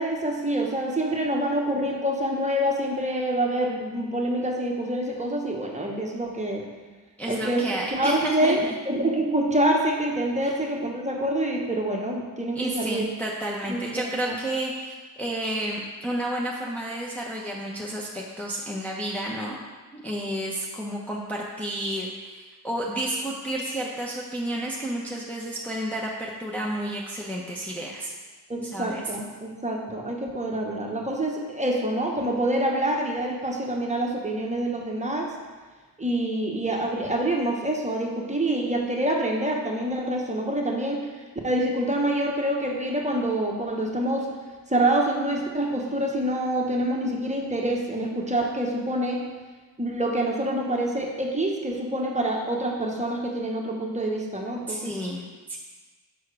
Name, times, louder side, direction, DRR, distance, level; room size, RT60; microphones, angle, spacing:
voice 1, 0.0-6.7 7.3-7.6 7.9-13.1 13.7-14.4 28.5-35.3 36.0-41.1 41.4-44.3 44.7-49.2 49.8-54.9, right 1 dB, 15° right, 0 dB, 1.2 m, -26 dB
voice 2, 7.2-8.7 10.4-10.6 12.5-19.5 19.9-28.1 28.7-29.1 54.7-55.6, right 1 dB, 5° left, -4 dB, 0.9 m, -31 dB
5.8 x 4.5 x 4.9 m, 1.3 s
cardioid pair, 60°, 41 cm